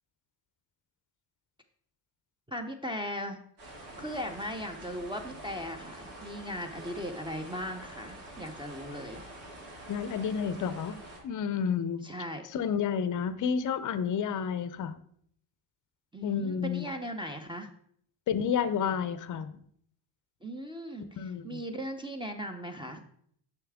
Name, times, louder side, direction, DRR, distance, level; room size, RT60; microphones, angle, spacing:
voice 1, 2.5-3.4 4.0-9.2 12.0-12.5 16.1-17.7 20.4-23.0, equal, 10° right, 1 dB, 0.6 m, -38 dB
sound 1, 3.6-11.2, right 1 dB, 70° right, 2.9 m, -46 dB
voice 2, 9.9-11.0 11.2-12.0 12.5-14.9 16.2-16.9 18.3-19.6 21.2-21.6, left 7 dB, 40° left, 13 dB, 0.6 m, -30 dB
6.8 x 5.7 x 3.5 m, 0.65 s
cardioid pair, 80°, 50 cm